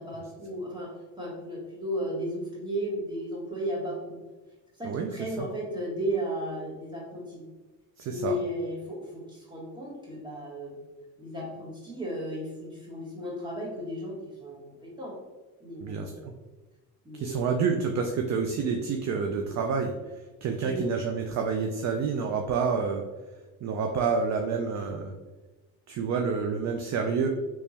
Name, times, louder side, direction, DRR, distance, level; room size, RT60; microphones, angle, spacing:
voice 1, 0.0-4.2 4.8-7.5 8.1-10.7 11.2-15.1 15.6-16.3 17.0-17.5 20.6-20.9, equal, 10° right, -5 dB, 1.4 m, -35 dB
voice 2, 8.0-8.3 15.8-16.3 17.1-19.9 20.4-23.0 23.6-25.1 25.9-27.3, right 5 dB, 45° right, 3 dB, 0.4 m, -28 dB
3.4 x 3.1 x 2.8 m, 1.2 s
cardioid pair, 100°, 39 cm